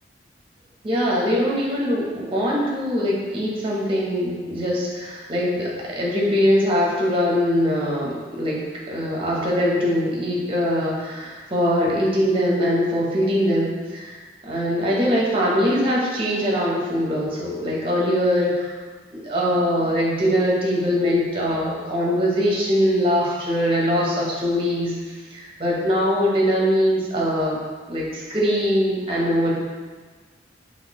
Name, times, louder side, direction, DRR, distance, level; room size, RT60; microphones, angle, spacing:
voice 1, 0.8-14.2 14.4-18.7 19.1-27.6 27.9-29.5, equal, 30° right, -4 dB, 0.6 m, -22 dB
3.6 x 2.5 x 2.8 m, 1.4 s
head